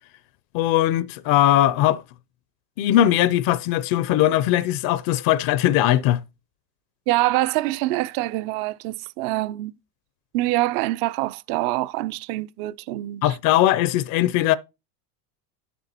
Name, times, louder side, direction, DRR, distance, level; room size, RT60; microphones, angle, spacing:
voice 1, 0.5-2.0 2.8-6.2 13.2-14.6, left 13 dB, 50° left, 0.6 m, -20 dB
voice 2, 7.1-9.7 10.3-13.4, right 18 dB, 50° right, 0.5 m, -25 dB
9.0 x 6.9 x 2.9 m
supercardioid pair, 105°, 47 cm